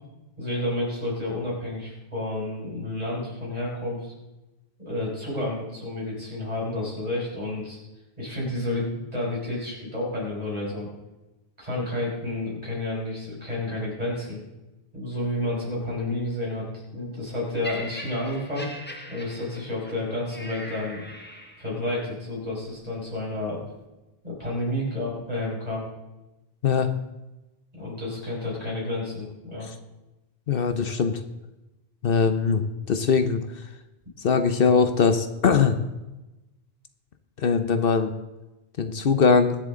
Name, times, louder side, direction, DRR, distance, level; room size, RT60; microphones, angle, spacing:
voice 1, 0.4-4.1 4.9-7.8 8.2-10.9 11.6-14.4 14.9-18.7 19.1-21.0 21.6-23.6 24.2-25.9 27.7-29.7, left 1 dB, 40° right, -5 dB, 5.5 m, -30 dB
Laughter, 17.6-21.9 22.7-22.9, left 1 dB, 10° left, 1.2 m, -41 dB
voice 2, 30.5-31.2 32.0-32.6 32.9-33.4 34.2-35.8 37.4-38.1 38.8-39.6, left 5 dB, 65° left, 9 dB, 1.0 m, -21 dB
22.0 x 7.4 x 3.7 m, 1.0 s
omnidirectional pair, 1.0 m